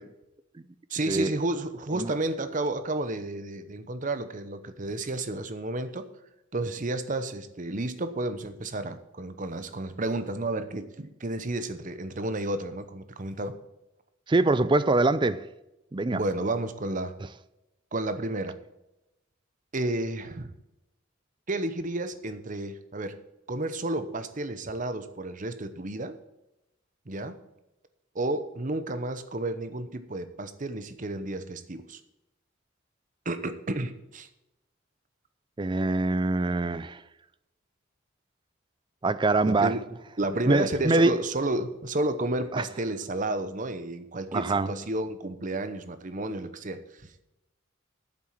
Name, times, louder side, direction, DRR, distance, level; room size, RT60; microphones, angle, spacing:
voice 1, 0.9-6.1 6.5-13.6 16.1-17.1 17.9-18.6 19.7-20.5 21.5-23.2 23.5-26.2 27.1-27.4 28.1-32.0 33.2-34.3 39.5-39.8 40.2-47.2, right 2 dB, 40° right, 0.8 m, -31 dB
voice 2, 14.3-15.5 15.9-16.2 35.6-37.0 39.0-39.7 40.5-41.1 42.5-42.6 44.3-44.7, right 2 dB, 25° right, 0.4 m, -24 dB
8.7 x 7.6 x 7.3 m
head